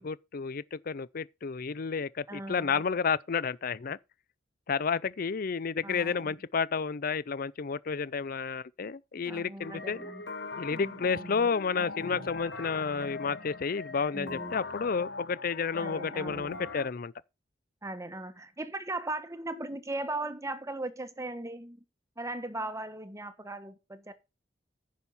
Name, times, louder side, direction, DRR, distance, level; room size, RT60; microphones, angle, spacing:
voice 1, 0.0-4.0 4.7-10.0 10.6-17.1, left 5 dB, 50° left, 0.5 m, -31 dB
voice 2, 2.3-2.8 5.8-6.3 9.2-10.2 10.7-11.5 12.1-12.3 14.1-14.6 15.8-16.7 17.8-21.8 22.2-24.1, right 2 dB, 15° right, 1.2 m, -38 dB
sound 1, 9.6-16.9, left 3 dB, 65° left, 1.5 m, -41 dB
10.0 x 6.2 x 5.5 m
head